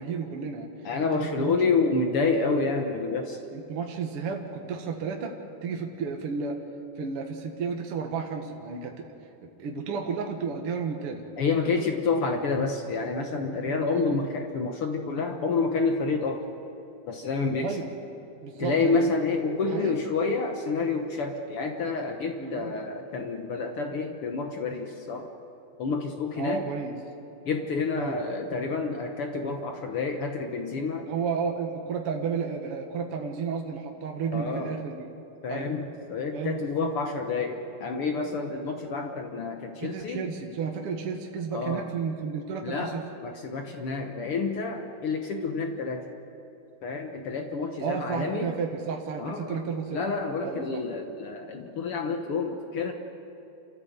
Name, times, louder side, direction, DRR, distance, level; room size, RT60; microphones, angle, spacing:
voice 1, 0.0-0.7 1.2-1.5 3.5-5.3 5.6-6.6 7.0-9.1 9.4-11.2 11.6-11.9 13.6-13.8 17.6-17.9 18.4-19.0 19.6-20.0 22.4-22.7 26.4-26.9 28.0-28.2 31.0-35.1 35.5-35.7 36.3-36.9 39.8-43.0 47.8-50.0 50.4-50.8, right 5 dB, 50° right, 2 dB, 1.8 m, -32 dB
voice 2, 0.8-3.4 11.4-16.5 17.1-17.8 18.6-25.3 25.8-26.6 27.4-31.1 34.3-34.8 35.4-40.2 41.5-41.8 42.6-46.1 46.8-48.5 49.2-52.9, left 4 dB, 75° left, 4 dB, 1.2 m, -29 dB
29.5 x 14.0 x 8.1 m, 2.9 s
omnidirectional pair, 4.4 m